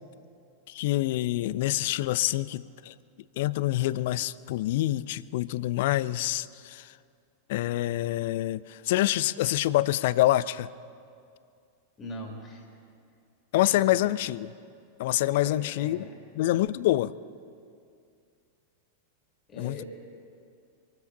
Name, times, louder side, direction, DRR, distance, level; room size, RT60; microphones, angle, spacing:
voice 1, 0.7-2.9 3.4-6.9 7.5-10.7 13.5-14.5 15.0-16.1 16.3-17.1 19.6-19.8, left 15 dB, 50° left, 20 dB, 0.4 m, -26 dB
voice 2, 12.0-12.6 13.7-14.0 15.3-16.1 19.5-19.8, left 1 dB, 25° left, 1 dB, 2.5 m, -41 dB
25.0 x 13.0 x 4.0 m, 2.3 s
figure-of-eight pair, 90°, 0 cm